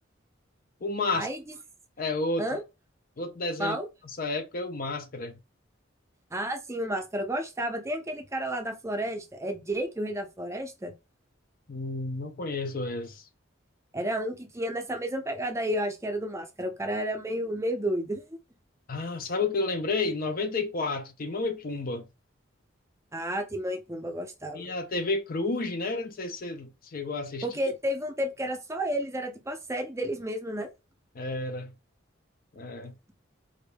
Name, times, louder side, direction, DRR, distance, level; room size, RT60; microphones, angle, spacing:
voice 1, 0.8-1.3 2.0-2.5 3.2-3.8 4.2-5.4 11.7-13.2 18.9-22.0 24.5-27.5 31.1-31.7 32.6-32.9, left 3 dB, 45° left, 0.6 m, -31 dB
voice 2, 6.3-10.9 13.9-18.4 23.1-24.7 27.4-30.7, right 1 dB, 15° right, 0.6 m, -31 dB
5.1 x 2.6 x 2.2 m
head